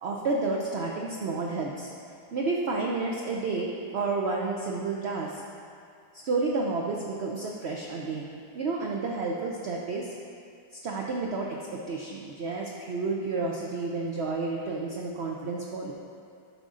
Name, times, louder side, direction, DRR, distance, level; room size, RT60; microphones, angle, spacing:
voice 1, 0.0-1.9 2.3-5.4 6.1-8.3 8.5-10.1 10.7-15.9, right 3 dB, 85° right, -1 dB, 0.5 m, -30 dB
11.5 x 3.8 x 3.7 m, 2.4 s
omnidirectional pair, 1.8 m